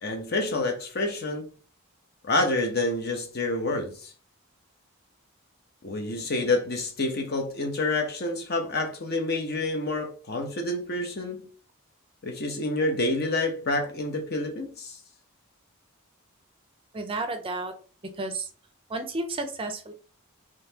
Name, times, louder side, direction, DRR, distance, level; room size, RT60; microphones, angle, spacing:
voice 1, 0.0-1.5 2.2-4.1 5.8-11.5 12.2-15.0, left 2 dB, 45° left, 0.8 m, -28 dB
voice 2, 16.9-17.7 18.2-18.5 18.9-19.9, right 2 dB, 25° right, 0.5 m, -32 dB
4.0 x 3.1 x 2.8 m
head